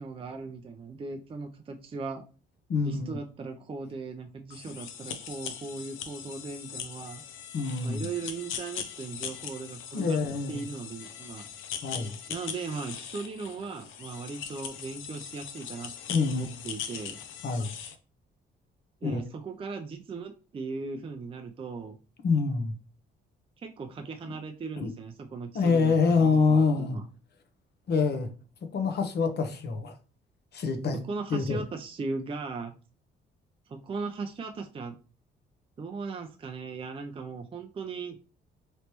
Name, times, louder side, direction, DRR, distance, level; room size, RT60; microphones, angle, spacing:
voice 1, 0.0-2.2 2.8-7.2 7.8-10.2 10.5-11.5 12.3-15.9 16.3-17.2 19.0-22.0 23.6-27.0 30.9-32.7 33.7-35.0 35.8-38.2, right 4 dB, 25° right, 4 dB, 0.4 m, -38 dB
voice 2, 2.7-3.2 7.5-8.1 9.9-10.6 11.8-12.2 16.1-16.4 17.4-17.7 19.0-19.2 22.2-22.7 24.2-24.3 24.8-24.9 25.5-27.0 27.9-28.3 28.7-29.9 30.5-31.0 31.3-31.6, left 4 dB, 55° left, 6 dB, 0.8 m, -26 dB
sound 1, 4.5-18.0, left 8 dB, 90° left, 0.5 m, -40 dB
3.2 x 3.1 x 2.9 m, 0.36 s
cardioid pair, 90°, 20 cm